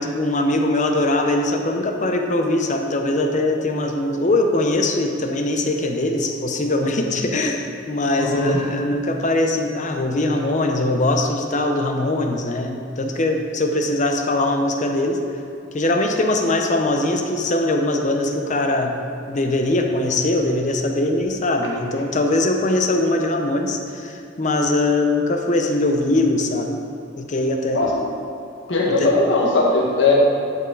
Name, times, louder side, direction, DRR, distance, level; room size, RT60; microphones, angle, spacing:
voice 1, 0.0-15.2 15.7-18.9 19.3-26.8 27.2-27.8 29.0-29.1, left 2 dB, 40° left, 3 dB, 0.7 m, -21 dB
voice 2, 8.1-8.6 27.7-27.9 28.7-30.1, left 3 dB, 70° left, -3 dB, 1.7 m, -19 dB
10.5 x 5.8 x 3.9 m, 2.7 s
head